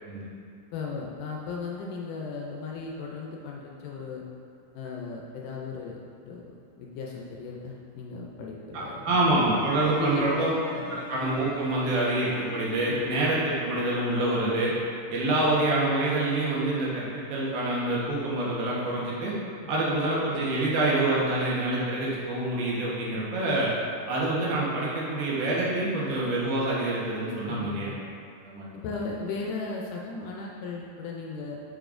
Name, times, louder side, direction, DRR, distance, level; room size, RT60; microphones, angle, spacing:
voice 1, 0.7-4.2 4.7-9.2 10.0-10.5 10.8-11.0 12.9-13.1 27.5-28.0 28.8-31.6, left 4 dB, 80° left, -2 dB, 2.0 m, -36 dB
voice 2, 9.0-10.5 10.9-14.7 15.1-19.3 19.7-23.7 24.1-27.9 28.4-28.6, right 2 dB, 85° right, -6 dB, 3.1 m, -26 dB
Bowed string instrument, 9.5-14.5, left 2 dB, 45° left, 2.0 m, -42 dB
7.0 x 6.6 x 2.5 m, 2.4 s
omnidirectional pair, 4.1 m